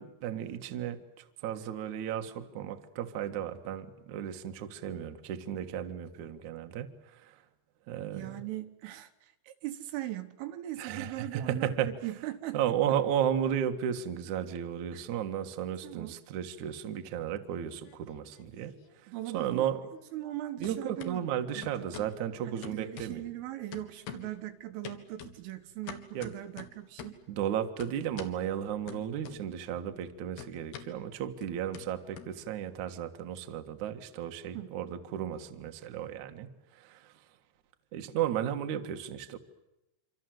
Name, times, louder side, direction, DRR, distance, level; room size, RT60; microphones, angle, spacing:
voice 1, 0.0-7.4 7.9-8.4 10.8-11.9 12.5-18.7 19.0-19.9 20.6-23.2 26.1-26.3 27.3-37.1 37.9-39.4, right 10 dB, 60° right, 7 dB, 2.1 m, -34 dB
voice 2, 8.1-12.6 14.9-15.0 15.8-16.1 19.1-19.7 20.1-21.2 21.6-21.9 22.5-27.2 34.5-34.7, right 15 dB, 85° right, 9 dB, 3.9 m, -40 dB
sound 1, 17.5-18.5 18.8-20.4 20.6-21.1 21.6-22.2 22.6-23.4 23.7-24.4 24.8-27.3 27.8-28.4 28.9-29.7 30.0-32.8, left 7 dB, 60° left, 3.5 m, -47 dB
26.5 x 26.5 x 7.8 m, 0.94 s
omnidirectional pair, 5.7 m